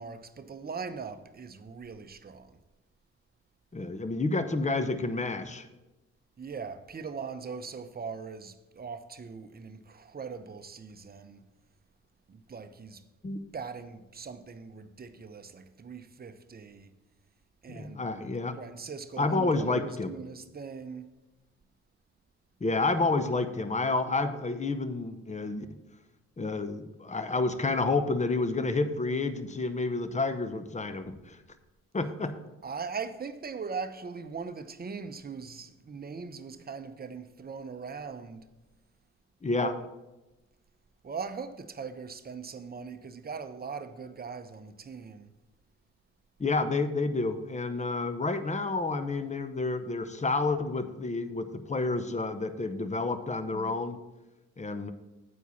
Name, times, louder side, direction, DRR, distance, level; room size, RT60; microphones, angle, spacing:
voice 1, 0.0-2.6 6.4-11.4 12.3-13.0 13.5-16.9 17.6-18.0 18.5-21.1 32.6-38.5 39.6-39.9 41.0-45.3, right 5 dB, 30° right, 0.8 m, -40 dB
voice 2, 3.7-5.7 13.2-13.4 17.7-18.6 19.2-20.1 22.6-25.7 26.4-31.4 31.9-32.3 39.4-39.7 46.4-54.0 54.6-54.9, left 3 dB, 25° left, 0.8 m, -29 dB
8.3 x 4.6 x 7.1 m
supercardioid pair, 60°, 30 cm